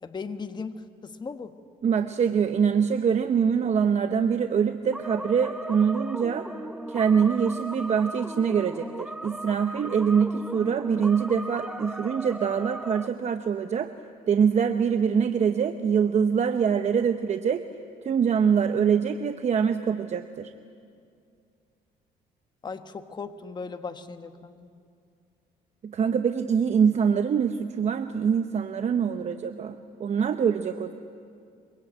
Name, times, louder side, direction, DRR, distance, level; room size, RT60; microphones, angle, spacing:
voice 1, 0.0-1.5 22.6-24.7, left 4 dB, 25° left, 8 dB, 1.3 m, -37 dB
voice 2, 1.8-6.5 6.9-13.9 14.3-17.6 18.0-20.5 25.8-30.9, right 7 dB, 40° right, 8 dB, 0.9 m, -24 dB
sound 1, 4.9-13.1, right 1 dB, 5° right, 0.6 m, -37 dB
24.0 x 22.5 x 8.9 m, 2.3 s
cardioid pair, 110°, 17 cm